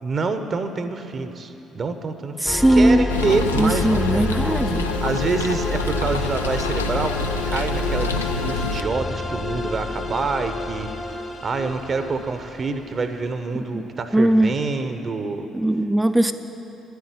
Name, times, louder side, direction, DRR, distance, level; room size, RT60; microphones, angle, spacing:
voice 1, 0.0-2.3 2.7-4.3 5.0-7.2 7.5-10.9 11.4-15.5, right 4 dB, 40° right, 8 dB, 0.8 m, -26 dB
voice 2, 2.4-3.1 3.5-4.9 13.7-13.8 14.1-14.6 15.5-16.3, right 1 dB, 10° right, 8 dB, 0.5 m, -19 dB
sound 1, 2.5-13.1, left 2 dB, 35° left, 1.0 m, -28 dB
sound 2, 3.1-8.8, left 4 dB, 80° left, 0.4 m, -28 dB
10.0 x 8.2 x 9.8 m, 3.0 s
figure-of-eight pair, 45°, 0 cm